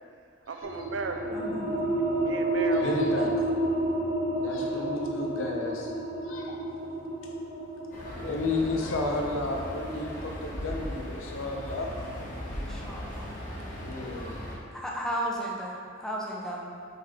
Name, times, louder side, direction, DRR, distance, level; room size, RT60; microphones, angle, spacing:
voice 1, 0.5-1.4 1.9-3.3, right 4 dB, 60° right, 4 dB, 0.5 m, -36 dB
sound 1, 0.6-11.8, right 1 dB, 35° right, 1.2 m, -31 dB
voice 2, 1.3-1.8 12.5-13.3 14.7-16.6, equal, ahead, -4 dB, 0.7 m, -34 dB
voice 3, 2.7-3.4 4.3-5.9 6.2-6.6 8.2-11.9 13.8-14.3, left 2 dB, 75° left, 0 dB, 0.8 m, -32 dB
sound 2, 7.9-14.6, equal, 40° left, 1.3 m, -38 dB
5.9 x 3.6 x 5.0 m, 2.1 s
head